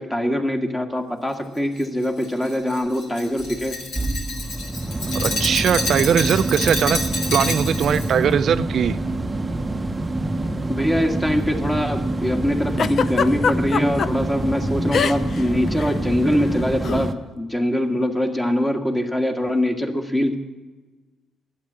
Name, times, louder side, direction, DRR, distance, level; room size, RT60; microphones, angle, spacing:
voice 1, 0.0-3.8 10.7-20.3, left 1 dB, 10° left, 3 dB, 1.7 m, -23 dB
Glass, 1.8-8.1, left 2 dB, 75° left, 3.7 m, -29 dB
sound 1, 3.4-17.1, right 2 dB, 15° right, 0.7 m, -26 dB
voice 2, 5.1-7.0 7.3-9.0, right 8 dB, 65° right, 12 dB, 0.4 m, -20 dB
Giggle, 12.8-14.1 14.9-15.4 15.7-15.9 16.8-17.1, left 6 dB, 55° left, 0.5 m, -22 dB
12.0 x 8.7 x 8.3 m, 1.2 s
cardioid pair, 90°, 0 cm